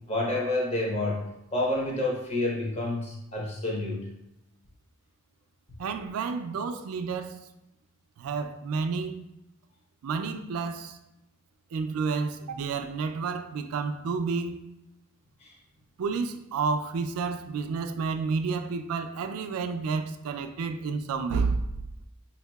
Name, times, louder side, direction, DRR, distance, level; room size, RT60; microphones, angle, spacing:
voice 1, 0.1-1.2 1.5-4.1 15.4-15.5, left 2 dB, 30° left, 0.7 m, -29 dB
voice 2, 5.8-7.4 8.2-9.2 10.0-11.0 11.7-14.7 16.0-21.6, right 5 dB, 80° right, 0.3 m, -30 dB
4.6 x 2.7 x 2.2 m
head